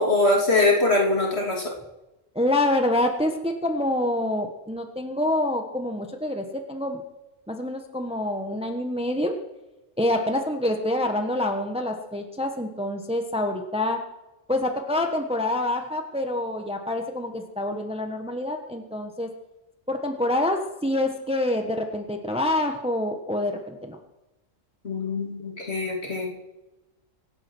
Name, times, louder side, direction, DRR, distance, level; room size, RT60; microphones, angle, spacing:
voice 1, 0.0-1.7 24.8-26.3, left 2 dB, 50° left, 0 dB, 3.1 m, -23 dB
voice 2, 2.3-7.0 7.5-9.3 10.0-14.0 14.5-19.3 19.9-24.0, left 1 dB, 5° right, 4 dB, 1.3 m, -26 dB
24.5 x 8.7 x 6.2 m, 0.99 s
omnidirectional pair, 1.4 m